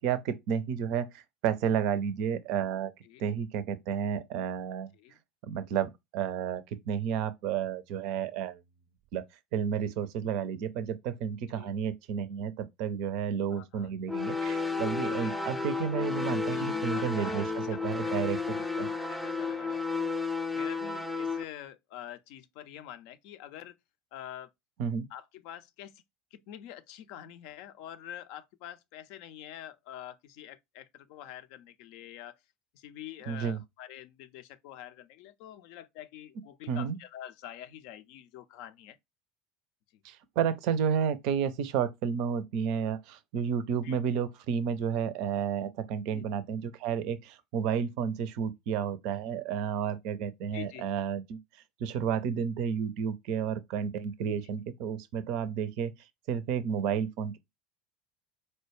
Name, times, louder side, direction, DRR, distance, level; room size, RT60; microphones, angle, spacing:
voice 1, 0.0-2.9 3.2-4.9 5.4-8.6 9.1-9.2 9.5-18.9 24.8-25.1 33.3-33.6 36.7-37.0 40.0-51.4 51.8-55.9 56.3-57.4, right 8 dB, 55° right, 0.4 m, -31 dB
voice 2, 13.5-13.9 15.2-15.4 16.5-18.1 18.5-18.7 19.0-20.2 20.5-23.8 24.1-24.5 25.1-26.0 26.3-32.4 32.7-39.0 43.8-44.0 46.1-46.3 50.5-50.8 54.3-54.4, left 11 dB, 55° left, 0.4 m, -46 dB
sound 1, 14.1-21.4, left 4 dB, 5° left, 0.5 m, -32 dB
4.2 x 2.2 x 3.1 m
figure-of-eight pair, 70°, 0 cm